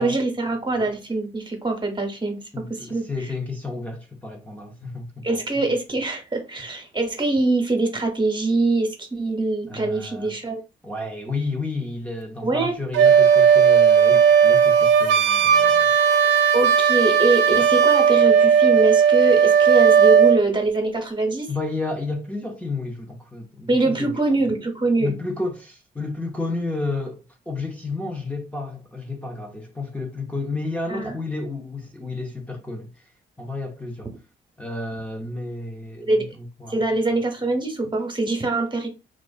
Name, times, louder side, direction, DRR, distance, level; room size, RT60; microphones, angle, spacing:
voice 1, 0.0-2.4 2.7-3.0 5.2-10.6 12.4-12.8 16.5-21.5 23.7-25.1 30.9-31.2 36.1-36.3 36.7-38.9, right 2 dB, 25° right, 0.8 m, -23 dB
voice 2, 2.5-5.3 9.7-10.3 10.8-15.9 17.5-17.7 21.5-24.1 25.0-33.1 33.4-34.1 34.6-36.8, left 3 dB, 5° left, 0.6 m, -31 dB
Wind instrument woodwind instrument, 12.9-20.4, right 7 dB, 70° right, 0.4 m, -16 dB
2.3 x 2.2 x 2.4 m
supercardioid pair, 50°, 20 cm